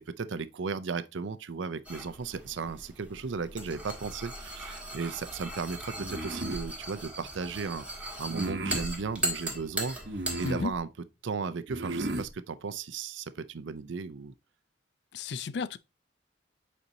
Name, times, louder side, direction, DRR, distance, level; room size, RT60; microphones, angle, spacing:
voice 1, 0.1-7.8 8.2-10.0 10.4-10.9 11.2-14.3, right 5 dB, 85° right, 0.5 m, -35 dB
sound 1, 1.8-10.6, right 1 dB, 5° right, 1.6 m, -38 dB
sound 2, 6.0-6.7 8.3-8.9 10.0-10.8 11.7-12.3, right 1 dB, 60° right, 1.0 m, -35 dB
voice 2, 15.1-15.8, left 4 dB, 65° left, 0.4 m, -33 dB
8.0 x 4.3 x 2.7 m
head